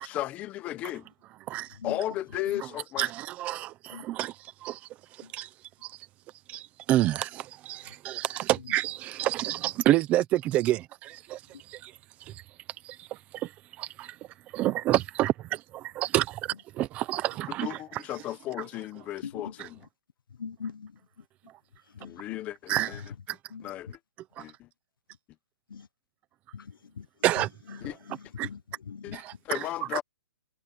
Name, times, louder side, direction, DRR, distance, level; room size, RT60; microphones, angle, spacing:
voice 1, 0.0-1.1 1.8-3.1 17.5-19.9 22.0-23.0 23.6-24.0 24.4-24.7 27.8-28.0 29.0-30.0, left 14 dB, 10° left, 1.0 m, -35 dB
voice 2, 9.2-9.6 9.9-10.2 10.5-10.8 14.6-15.3 16.1-16.2 17.1-17.2 17.6-17.7 22.7-22.9 27.2-27.5, right 15 dB, 10° right, 0.8 m, -23 dB
voice 3, 20.4-20.9 22.0-22.2 23.5-23.7 25.7-25.9 26.5-27.0 27.7-27.9 28.4-29.1, left 6 dB, 75° left, 1.2 m, -40 dB
hypercardioid pair, 175°, 11 cm